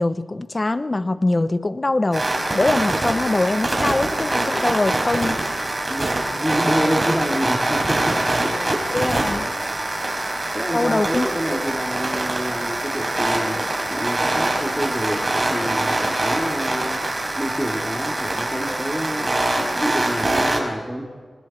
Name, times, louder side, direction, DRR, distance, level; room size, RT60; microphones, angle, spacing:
voice 1, 0.0-5.4 8.9-9.5 10.7-11.3 16.3-16.5 17.0-17.1, left 2 dB, 30° left, 11 dB, 0.9 m, -23 dB
sound 1, 2.1-20.6, right 2 dB, 30° right, 5.6 m, -24 dB
voice 2, 6.4-8.2 8.6-8.8 10.5-13.6 13.9-17.0 17.4-21.1, equal, ahead, -2 dB, 2.9 m, -28 dB
28.5 x 26.5 x 4.5 m, 1.5 s
wide cardioid pair, 95°, 0 cm